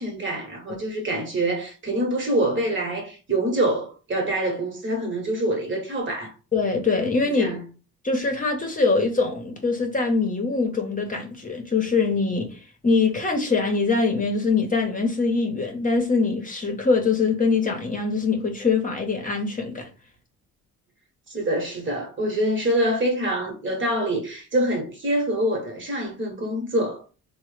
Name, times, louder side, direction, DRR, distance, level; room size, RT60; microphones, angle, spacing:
voice 1, 0.0-6.3 7.4-7.6 21.3-27.0, right 1 dB, 40° right, 1.1 m, -25 dB
voice 2, 6.5-7.5 8.0-19.9, left 4 dB, 25° left, 0.8 m, -23 dB
3.0 x 2.1 x 3.1 m
cardioid pair, 90°, 30 cm